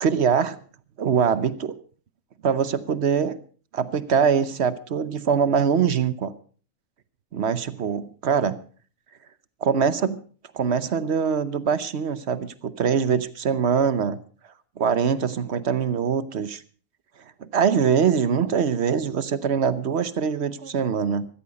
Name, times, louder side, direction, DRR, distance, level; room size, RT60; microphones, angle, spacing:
voice 1, 0.0-0.6 1.0-1.7 2.4-3.4 3.7-6.3 7.3-8.6 9.6-10.2 10.5-14.2 14.8-16.6 17.4-21.3, right 6 dB, 50° right, 15 dB, 1.0 m, -23 dB
14.5 x 14.0 x 5.2 m, 0.42 s
omnidirectional pair, 1.6 m